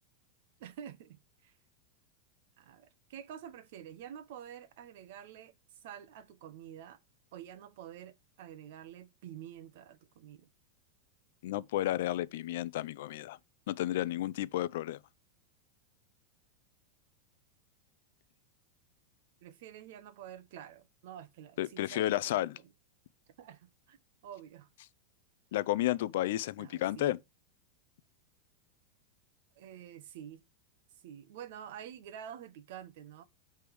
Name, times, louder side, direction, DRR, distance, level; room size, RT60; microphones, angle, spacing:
voice 1, 0.6-1.5 2.6-7.0 7.3-10.5 19.4-22.1 22.4-22.7 23.4-24.0 24.2-24.7 26.6-27.1 29.6-30.4 31.0-33.2, right 10 dB, 60° right, 0.7 m, -48 dB
voice 2, 11.4-13.4 13.7-15.0 21.6-22.6 25.5-27.2, left 14 dB, 65° left, 0.4 m, -32 dB
6.9 x 3.4 x 4.6 m
supercardioid pair, 165°, 0 cm